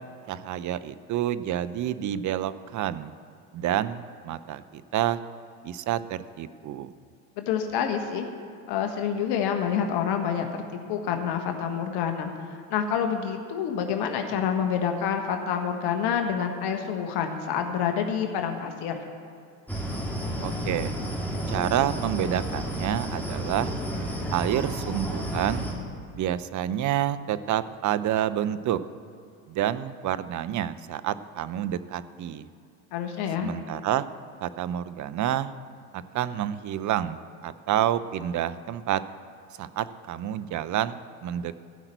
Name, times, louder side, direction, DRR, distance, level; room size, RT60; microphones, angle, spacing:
voice 1, 0.3-3.1 3.5-5.2 5.6-6.9 20.4-20.9 21.5-23.7 24.3-25.7 26.1-28.8 29.5-32.5 33.4-34.0 34.4-35.5 35.9-39.0 39.6-41.6, right 11 dB, 40° right, 14 dB, 0.7 m, -28 dB
voice 2, 7.4-8.2 8.7-10.6 10.9-12.3 12.7-19.0 32.9-33.5, left 7 dB, 60° left, 5 dB, 1.5 m, -27 dB
sound 1, 19.7-25.7, equal, 5° left, 2.9 m, -31 dB
15.5 x 5.8 x 8.1 m, 2.5 s
hypercardioid pair, 80°, 45 cm